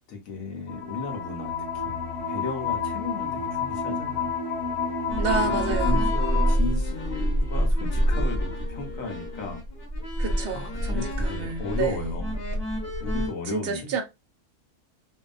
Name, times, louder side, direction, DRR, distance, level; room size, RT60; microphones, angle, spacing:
voice 1, 0.1-2.0 2.3-4.3 5.3-5.5 5.8-9.6 10.5-12.4 13.0-13.9, left 3 dB, 75° left, 1.1 m, -35 dB
sound 1, 0.7-6.6, left 5 dB, 90° left, 1.3 m, -29 dB
sound 2, 5.1-13.3, equal, 50° left, 0.9 m, -27 dB
voice 2, 5.2-6.1 10.2-12.1 13.4-14.0, right 5 dB, 55° right, 0.7 m, -30 dB
2.6 x 2.2 x 2.3 m
omnidirectional pair, 1.5 m